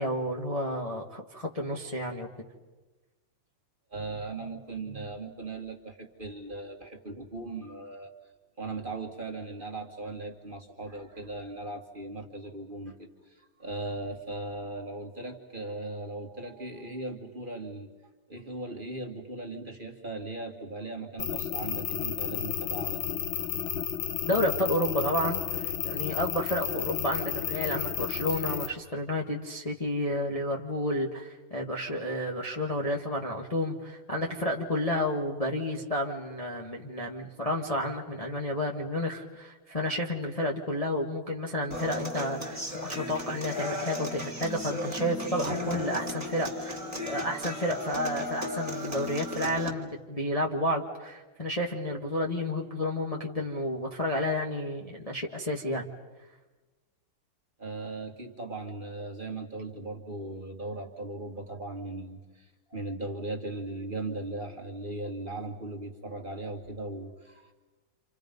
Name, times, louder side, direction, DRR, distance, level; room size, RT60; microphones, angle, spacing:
voice 1, 0.0-2.3 24.3-55.9, left 1 dB, 20° left, -1 dB, 1.4 m, -31 dB
voice 2, 3.9-8.1 8.6-17.9 18.3-24.1 57.6-67.5, right 2 dB, 25° right, 1 dB, 2.1 m, -38 dB
sound 1, 21.2-28.7, left 9 dB, 85° left, 1.7 m, -32 dB
Human voice / Acoustic guitar, 41.7-49.7, left 1 dB, 10° right, 2.3 m, -35 dB
29.5 x 27.0 x 5.3 m, 1.2 s
omnidirectional pair, 2.1 m